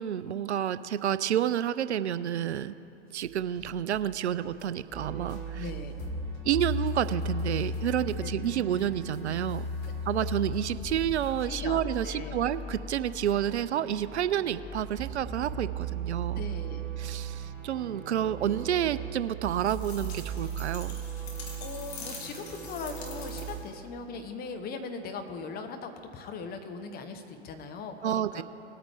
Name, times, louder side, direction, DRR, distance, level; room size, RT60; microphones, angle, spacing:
voice 1, 0.0-2.7 3.1-5.6 6.4-9.7 10.1-16.4 17.0-21.0 28.0-28.4, right 10 dB, 75° right, 14 dB, 0.5 m, -29 dB
sound 1, 3.1-11.6, left 5 dB, 45° left, 1.4 m, -55 dB
sound 2, 4.9-23.6, right 2 dB, 5° left, 2.5 m, -37 dB
voice 2, 5.5-5.9 8.2-8.3 9.8-9.9 11.5-12.4 16.3-16.9 21.6-28.4, left 4 dB, 25° left, 6 dB, 1.1 m, -40 dB
sound 3, 19.6-23.8, left 3 dB, 70° left, 2.1 m, -45 dB
20.0 x 8.8 x 3.4 m, 2.9 s
figure-of-eight pair, 95°, 34 cm